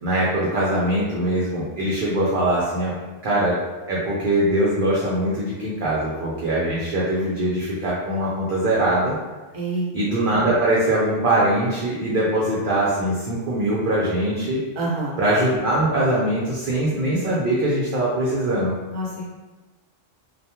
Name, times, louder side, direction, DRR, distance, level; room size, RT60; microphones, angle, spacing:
voice 1, 0.0-2.9 3.2-3.6 3.9-9.2 9.9-14.6 15.2-18.7, right 1 dB, 60° right, -6 dB, 0.5 m, -22 dB
voice 2, 9.5-9.8 14.8-15.2 18.9-19.2, right 2 dB, 40° right, -7 dB, 0.9 m, -26 dB
2.3 x 2.2 x 2.8 m, 1.2 s
omnidirectional pair, 1.3 m